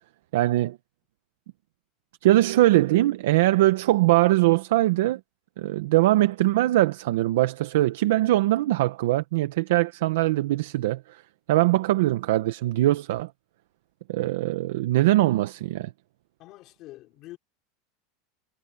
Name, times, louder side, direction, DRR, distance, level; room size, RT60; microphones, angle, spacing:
voice 1, 0.3-0.8 2.2-5.2 5.6-11.2 11.5-13.3 14.1-15.9, right 16 dB, 80° right, 0.9 m, -22 dB
voice 2, 16.4-17.4, left 17 dB, 35° left, 5.1 m, -45 dB
supercardioid pair, 175°, 0 cm